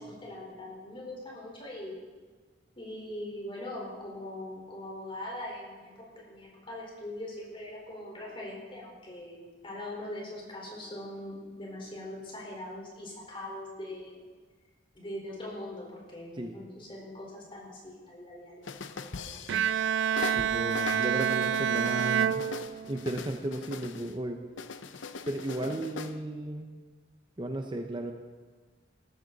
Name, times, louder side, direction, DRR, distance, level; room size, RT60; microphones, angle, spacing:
voice 1, 0.0-2.0 2.8-14.3 14.9-19.4 25.6-25.8, left 1 dB, 30° left, -3 dB, 4.4 m, -42 dB
sound 1, 18.6-19.8 20.2-24.1 24.6-26.2, left 5 dB, 85° left, 0.7 m, -41 dB
Bowed string instrument, 19.5-23.2, right 8 dB, 70° right, 0.3 m, -28 dB
voice 2, 20.3-22.5 22.9-24.4 25.3-26.7 27.4-28.1, right 1 dB, 25° right, 4 dB, 0.8 m, -34 dB
18.0 x 14.0 x 4.1 m, 1.4 s
head